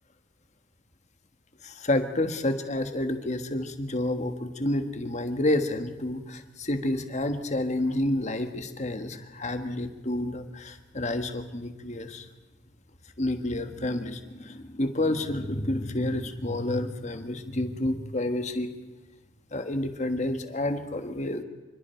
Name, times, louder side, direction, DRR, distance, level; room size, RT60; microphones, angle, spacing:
voice 1, 1.6-12.2 13.2-18.7 19.5-21.4, left 1 dB, 35° left, 7 dB, 1.5 m, -29 dB
26.5 x 24.5 x 4.5 m, 1.2 s
head